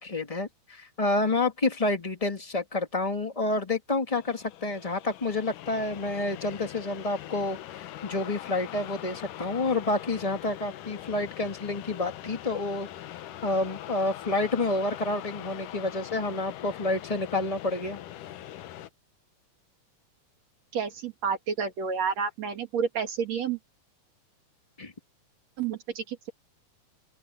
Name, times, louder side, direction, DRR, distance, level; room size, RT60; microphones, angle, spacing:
voice 1, 0.0-12.9 13.4-18.0 24.8-24.9, left 2 dB, 15° left, 1.1 m, -29 dB
sound 1, 4.1-18.9, left 13 dB, 80° left, 2.5 m, -42 dB
voice 2, 20.7-23.6 25.6-26.3, right 6 dB, 55° right, 3.3 m, -30 dB
open air
omnidirectional pair, 3.7 m